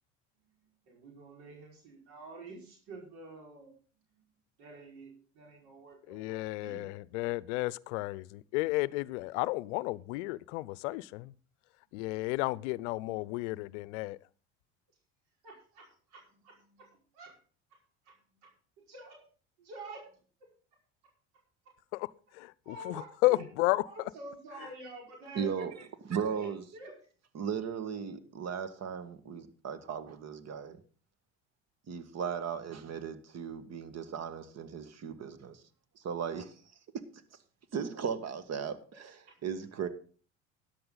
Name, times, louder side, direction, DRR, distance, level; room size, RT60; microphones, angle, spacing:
voice 1, 0.8-3.7 4.1-4.3 4.6-6.9 13.4-13.8 15.4-17.4 18.0-18.2 18.4-18.5 18.8-19.2 19.6-20.0 22.6-23.4 23.8-25.8 26.3-26.9 39.3-39.4, right 2 dB, 70° right, 5.1 m, -49 dB
voice 2, 6.1-11.3 11.9-14.2 21.9-22.1 22.4-23.8, left 21 dB, 75° left, 0.6 m, -32 dB
voice 3, 25.3-25.7 26.0-26.6 27.3-30.8 31.9-35.6 36.0-36.5 36.9-37.0 37.7-39.9, right 7 dB, 45° right, 1.8 m, -37 dB
13.5 x 10.5 x 3.9 m
hypercardioid pair, 75°, 36 cm